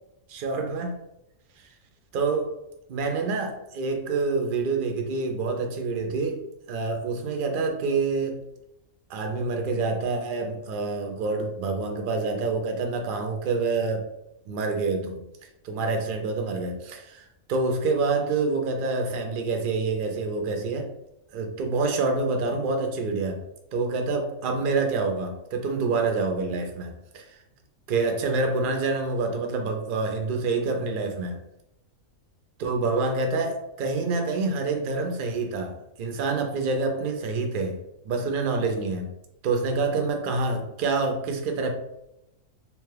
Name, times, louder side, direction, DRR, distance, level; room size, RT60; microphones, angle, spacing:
voice 1, 0.3-1.0 2.1-2.6 2.9-8.4 9.1-14.1 14.5-15.2 15.6-20.9 21.3-23.4 23.7-27.4 27.9-31.4 32.6-39.1 39.4-41.7, right 3 dB, 60° right, 4 dB, 0.5 m, -27 dB
2.9 x 2.3 x 3.2 m, 0.85 s
omnidirectional pair, 1.4 m